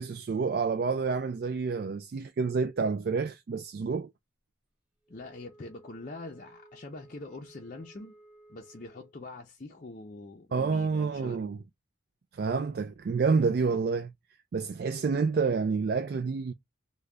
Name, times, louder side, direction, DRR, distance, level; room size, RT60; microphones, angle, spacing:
voice 1, 0.0-4.1 10.5-11.6 12.3-14.1 14.5-16.5, right 5 dB, 50° right, 0.3 m, -28 dB
Wind instrument woodwind instrument, 5.0-9.2, right 2 dB, 5° right, 1.0 m, -56 dB
voice 2, 5.1-8.2 8.5-11.5, left 2 dB, 40° left, 0.5 m, -44 dB
3.3 x 2.2 x 3.7 m
head